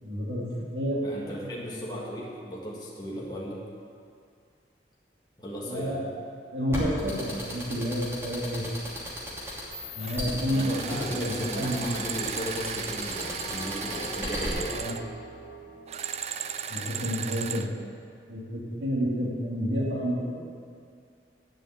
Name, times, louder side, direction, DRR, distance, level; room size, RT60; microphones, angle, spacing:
voice 1, 0.0-1.1 1.4-1.5 5.6-6.0 6.5-8.6 10.0-11.8 14.7-14.9 16.7-17.6 18.3-20.4, equal, 80° right, -5 dB, 2.5 m, -30 dB
voice 2, 1.0-3.6 5.4-6.0 10.5-14.8, equal, 25° left, -6 dB, 1.7 m, -36 dB
sound 1, 6.7-14.5, equal, 15° right, 2.5 m, -35 dB
sound 2, 10.0-10.2 10.5-15.0 15.9-17.7, right 8 dB, 40° right, 0.4 m, -36 dB
Bell, 13.1-17.7, right 1 dB, 60° right, 2.8 m, -44 dB
10.5 x 5.5 x 8.3 m, 2.3 s
head